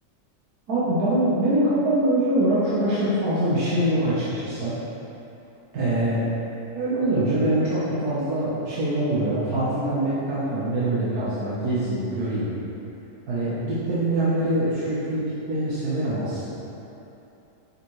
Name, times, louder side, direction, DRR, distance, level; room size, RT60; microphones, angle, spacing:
voice 1, 0.7-4.8 5.7-6.2 6.7-12.6 13.3-16.5, right 1 dB, 60° right, -10 dB, 1.6 m, -24 dB
8.2 x 5.5 x 3.2 m, 3.0 s
omnidirectional pair, 1.9 m